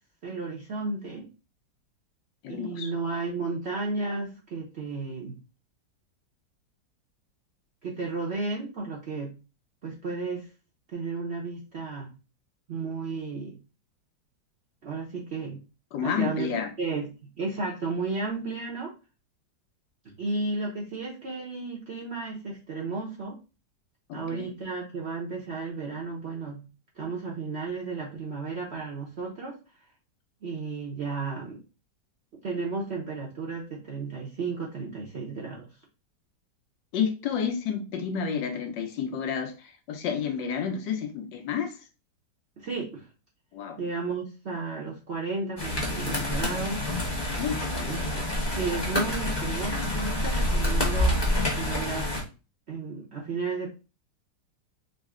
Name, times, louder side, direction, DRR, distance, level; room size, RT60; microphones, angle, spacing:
voice 1, 0.2-1.3 2.5-5.4 7.8-9.3 9.8-10.5 10.9-12.1 12.7-13.5 14.8-15.6 16.0-18.9 20.0-23.4 24.1-26.6 27.0-29.6 30.4-31.6 32.4-35.7 42.6-43.1 43.8-46.9 47.9-51.2 51.5-52.1 52.7-53.7, right 3 dB, 55° right, 0.7 m, -33 dB
voice 2, 2.4-2.9 15.9-16.7 24.1-24.5 36.9-41.8 43.5-43.8 47.4-48.1, left 7 dB, 80° left, 1.4 m, -30 dB
sound 1, 45.6-52.2, left 1 dB, 20° left, 0.8 m, -27 dB
3.9 x 2.1 x 3.6 m
omnidirectional pair, 2.0 m